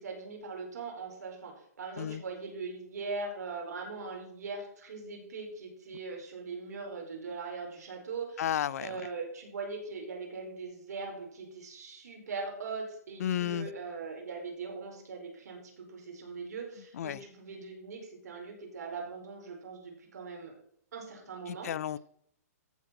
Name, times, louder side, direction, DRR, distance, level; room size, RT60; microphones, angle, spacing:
voice 1, 0.0-8.4 8.8-20.5 20.9-21.7, right 4 dB, 80° right, 4.6 m, -41 dB
voice 2, 8.4-9.0 13.2-13.7 16.9-17.2 21.5-22.0, left 10 dB, 65° left, 0.5 m, -32 dB
14.5 x 4.9 x 5.9 m
hypercardioid pair, 145°, 9 cm